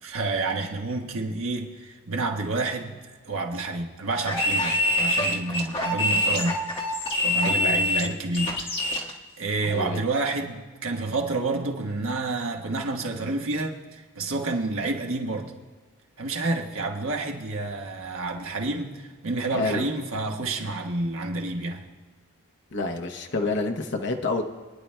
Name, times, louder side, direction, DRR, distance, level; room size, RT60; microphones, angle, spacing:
voice 1, 0.0-3.0 3.2-6.6 7.2-8.7 9.4-15.5 16.2-21.9, right 3 dB, 70° right, 2 dB, 1.3 m, -29 dB
sound 1, 4.2-9.1, left 1 dB, 25° left, 1.5 m, -25 dB
voice 2, 7.5-8.1 9.6-10.0 19.5-19.9 22.7-24.4, left 3 dB, 50° left, 3 dB, 0.8 m, -29 dB
25.0 x 10.0 x 2.2 m, 1.4 s
head